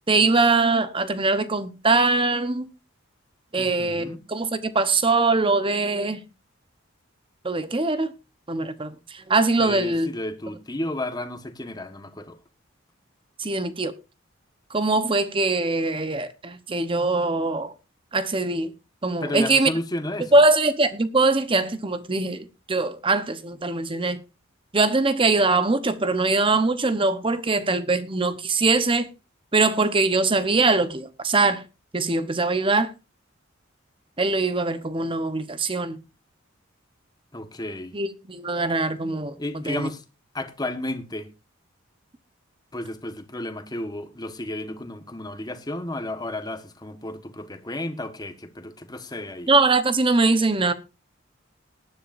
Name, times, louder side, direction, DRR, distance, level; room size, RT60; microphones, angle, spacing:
voice 1, 0.1-2.7 3.5-6.2 7.4-8.1 8.5-10.1 13.4-13.9 14.7-17.7 18.1-18.7 19.0-19.7 20.3-24.2 24.7-29.1 29.5-31.6 31.9-32.9 34.2-36.0 37.9-39.4 39.7-39.9 49.5-50.7, right 3 dB, 25° right, 0.9 m, -22 dB
voice 2, 3.6-4.2 9.6-12.4 19.2-20.4 37.3-38.0 39.4-40.0 40.3-41.3 42.7-49.5, left 1 dB, 20° left, 1.4 m, -32 dB
19.0 x 10.5 x 2.6 m
head